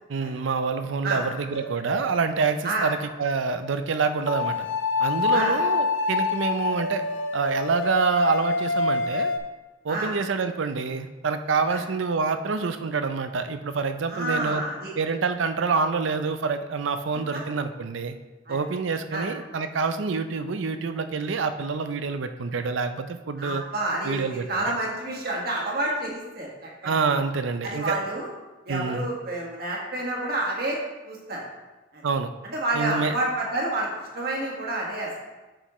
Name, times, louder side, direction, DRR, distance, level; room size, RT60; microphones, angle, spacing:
voice 1, 0.1-4.7 5.0-7.0 7.3-9.3 9.8-14.6 15.0-18.2 18.5-23.6 24.0-24.4 26.8-28.0 28.7-29.1 32.0-32.3 32.7-33.1, right 4 dB, 75° right, 9 dB, 0.5 m, -27 dB
sound 1, 1.5-2.2 4.3-9.4, left 4 dB, 70° left, 0.8 m, -26 dB
voice 2, 14.1-14.9 17.3-17.4 18.5-18.6 19.1-19.3 23.4-26.9 27.6-28.3 28.6-30.8 31.0-31.4 31.9-32.0 32.5-33.9 34.1-35.1, right 2 dB, 50° right, -3 dB, 1.6 m, -29 dB
7.6 x 6.3 x 3.1 m, 1.2 s
head